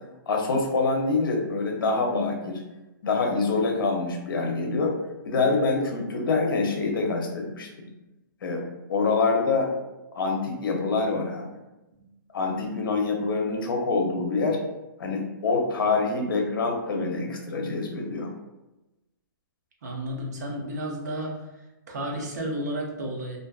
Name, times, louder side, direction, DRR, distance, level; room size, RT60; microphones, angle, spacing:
voice 1, 0.3-2.6 3.0-4.9 5.2-7.9 8.4-8.6 8.9-9.7 10.1-11.5 12.3-14.6 15.0-18.3, left 3 dB, 70° left, 2 dB, 0.6 m, -25 dB
voice 2, 19.8-21.4 21.9-23.4, right 1 dB, 50° right, 0 dB, 0.6 m, -32 dB
2.5 x 2.3 x 2.3 m, 1.0 s
hypercardioid pair, 170°, 12 cm